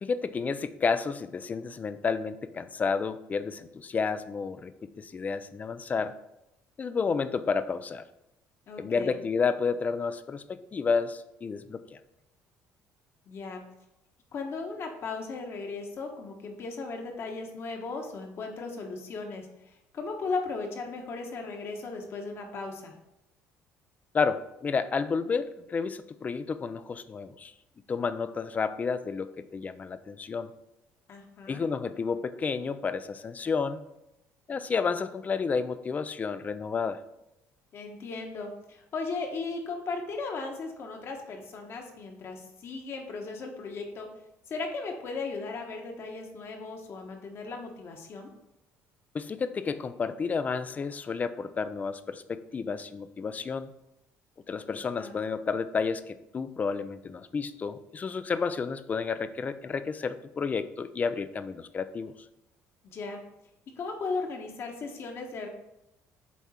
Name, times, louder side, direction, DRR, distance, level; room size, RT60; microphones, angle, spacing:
voice 1, 0.0-6.1 6.8-8.0 8.8-12.0 24.1-27.5 27.9-30.5 31.5-33.8 34.5-37.0 49.1-53.7 54.5-62.1, left 5 dB, 30° left, 13 dB, 0.4 m, -31 dB
voice 2, 8.7-9.2 13.3-13.6 14.3-22.9 31.1-31.6 37.7-44.1 44.5-48.3 54.7-55.1 62.8-63.2 63.8-65.5, left 4 dB, 50° left, 3 dB, 1.3 m, -36 dB
8.2 x 3.5 x 4.3 m, 0.88 s
cardioid pair, 105°, 5 cm